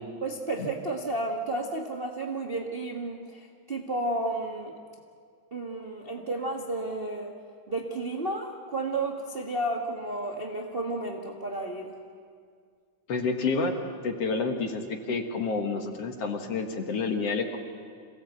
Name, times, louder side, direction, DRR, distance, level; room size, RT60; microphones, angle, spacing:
voice 1, 0.2-4.8 5.5-7.3 7.7-12.0, right 2 dB, 50° right, 0 dB, 0.6 m, -32 dB
voice 2, 13.1-13.7 14.0-17.6, left 4 dB, 55° left, 4 dB, 2.3 m, -29 dB
27.0 x 17.5 x 8.1 m, 2.1 s
omnidirectional pair, 3.8 m